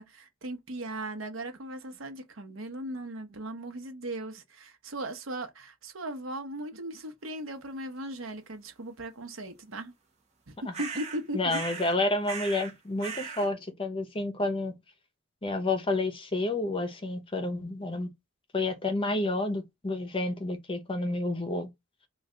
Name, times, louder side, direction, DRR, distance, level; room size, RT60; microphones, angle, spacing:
voice 1, 0.0-9.9 10.5-11.6, right 1 dB, 85° right, 0.9 m, -38 dB
sound 1, 10.7-11.2 11.5-12.0 12.2-12.7 13.0-13.5, right 6 dB, 35° right, 0.9 m, -38 dB
voice 2, 11.3-14.7 15.4-18.1 18.5-21.7, left 2 dB, 25° left, 0.7 m, -30 dB
3.3 x 2.4 x 3.7 m
head